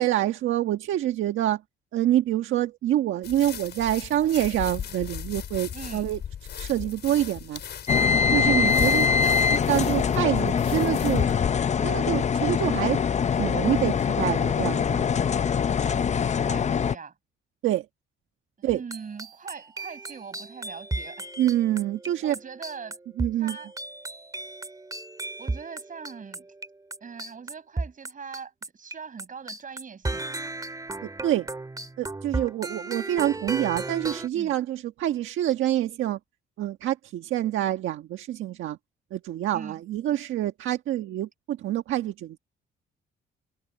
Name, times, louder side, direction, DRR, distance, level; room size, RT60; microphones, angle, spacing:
voice 1, 0.0-1.6 1.9-6.2 6.6-7.6 8.1-9.1 9.5-11.3 11.8-13.0 13.4-15.0 17.6-17.8 18.6-18.8 21.4-22.3 23.2-23.6 31.2-31.5 32.0-36.2 36.6-38.8 39.1-42.4, right 12 dB, 80° right, 1.5 m, -26 dB
sound 1, 3.2-11.5, left 8 dB, 60° left, 4.5 m, -36 dB
voice 2, 5.7-6.1 9.1-9.4 16.4-17.1 18.6-21.3 22.2-23.0 23.4-23.7 25.4-26.5 27.0-30.3 34.3-34.6 39.5-39.8, right 6 dB, 40° right, 7.6 m, -41 dB
sound 2, 7.9-16.9, left 6 dB, 35° left, 0.6 m, -23 dB
sound 3, 18.7-28.9 29.2-34.3, right 2 dB, 20° right, 2.1 m, -35 dB
cardioid pair, 90°, 20 cm